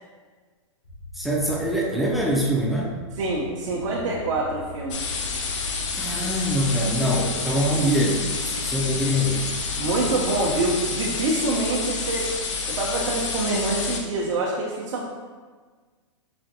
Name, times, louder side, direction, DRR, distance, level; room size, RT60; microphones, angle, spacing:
sound 1, 0.8-10.8, left 1 dB, 85° left, 1.1 m, -41 dB
voice 1, 1.1-2.9 5.9-9.4, equal, ahead, -3 dB, 0.4 m, -24 dB
voice 2, 3.2-5.0 6.9-7.3 8.5-8.6 9.8-12.3 12.7-15.1, right 2 dB, 65° right, -4 dB, 0.7 m, -26 dB
sound 2, 4.9-14.0, left 4 dB, 70° left, 0.6 m, -29 dB
5.0 x 2.5 x 2.8 m, 1.5 s
hypercardioid pair, 135°, 16 cm